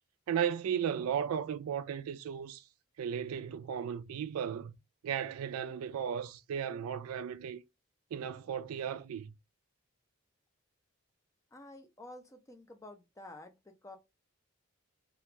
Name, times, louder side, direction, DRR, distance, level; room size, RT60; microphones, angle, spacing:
voice 1, 0.3-2.6 3.0-4.7 5.0-7.6 8.1-9.3, right 8 dB, 80° right, 0.3 m, -35 dB
voice 2, 11.5-14.0, left 2 dB, 15° left, 0.4 m, -50 dB
2.4 x 2.2 x 2.9 m
head